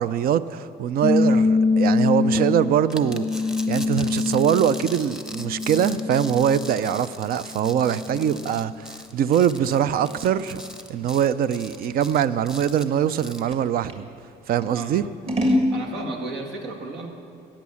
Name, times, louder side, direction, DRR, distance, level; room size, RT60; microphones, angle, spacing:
voice 1, 0.0-3.3 3.7-8.9 9.1-10.6 10.9-14.1 14.5-15.0, right 9 dB, 60° right, 0.5 m, -23 dB
sound 1, 1.0-7.1 7.5-8.8, left 3 dB, 25° left, 0.3 m, -24 dB
sound 2, 2.9-13.5, equal, 5° right, 0.8 m, -40 dB
Scissors, 8.2-14.0 14.6-15.7, left 1 dB, 35° right, 1.8 m, -29 dB
voice 2, 15.4-17.1, right 3 dB, 85° right, 2.0 m, -34 dB
15.0 x 8.8 x 7.0 m
cardioid pair, 110°, 17 cm